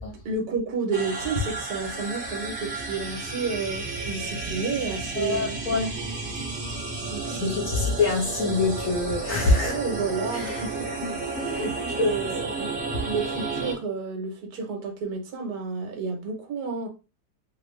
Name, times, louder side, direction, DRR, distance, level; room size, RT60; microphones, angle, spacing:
voice 1, 0.2-5.7 7.1-7.9 9.6-10.9 11.6-12.7 13.0-16.9, right 4 dB, 70° right, 1.4 m, -31 dB
sound 1, 0.9-13.7, right 3 dB, 40° right, 0.9 m, -32 dB
voice 2, 5.2-6.0 7.4-9.8 10.3-10.4 11.0-11.1 11.4-11.7 12.0-12.1, left 3 dB, 60° left, 1.0 m, -25 dB
3.3 x 2.2 x 3.1 m
omnidirectional pair, 1.8 m